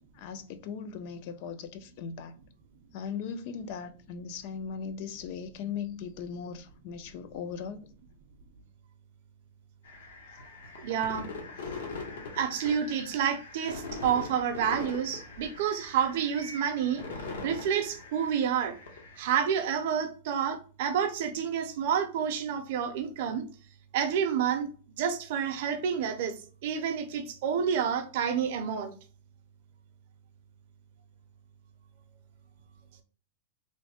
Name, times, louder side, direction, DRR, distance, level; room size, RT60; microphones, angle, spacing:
voice 1, 0.2-2.4 2.9-7.9, left 6 dB, 35° left, 0.4 m, -38 dB
sound 1, 9.8-19.6, left 3 dB, 70° left, 1.0 m, -42 dB
voice 2, 10.8-11.3 12.4-17.0 17.4-18.8 19.2-23.5 23.9-24.7 24.9-28.9, right 8 dB, 45° right, 0.5 m, -29 dB
3.2 x 2.1 x 4.2 m
supercardioid pair, 175°, 0 cm